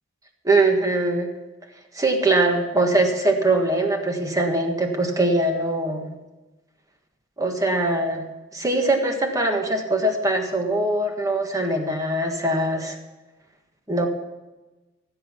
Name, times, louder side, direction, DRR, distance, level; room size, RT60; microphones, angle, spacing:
voice 1, 0.4-1.3 1.9-6.1 7.4-8.2 8.5-13.0 13.9-14.1, right 2 dB, 15° right, 3 dB, 1.6 m, -22 dB
15.5 x 8.0 x 5.7 m, 1.1 s
head